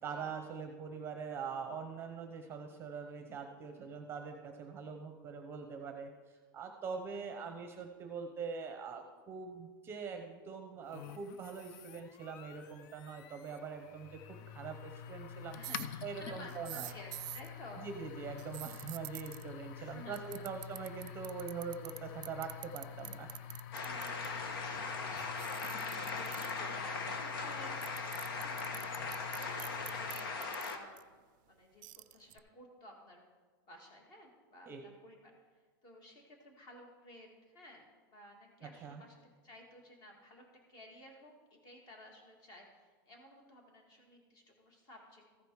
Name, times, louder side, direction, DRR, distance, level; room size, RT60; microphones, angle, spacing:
voice 1, 0.0-14.2 14.5-15.6 16.0-16.9 17.8-23.3 34.7-34.8 38.6-39.0, right 5 dB, 20° right, 5 dB, 0.8 m, -43 dB
voice 2, 7.1-7.6 14.3-14.6 15.5-17.9 19.7-20.5 23.8-33.2 33.6-39.2 39.4-45.2, left 1 dB, 35° left, 1 dB, 2.1 m, -55 dB
sound 1, 10.9-30.5, left 9 dB, 50° left, 0.5 m, -48 dB
sound 2, 15.6-15.9 16.5-17.5 18.4-19.4 20.1-22.0 22.2-24.3 25.2-26.6 27.5-27.6 27.8-31.0 31.8-32.4, right 19 dB, 60° right, 0.4 m, -46 dB
sound 3, 23.7-30.8, left 4 dB, 80° left, 1.3 m, -39 dB
14.5 x 5.1 x 4.8 m, 1.4 s
supercardioid pair, 150°, 12 cm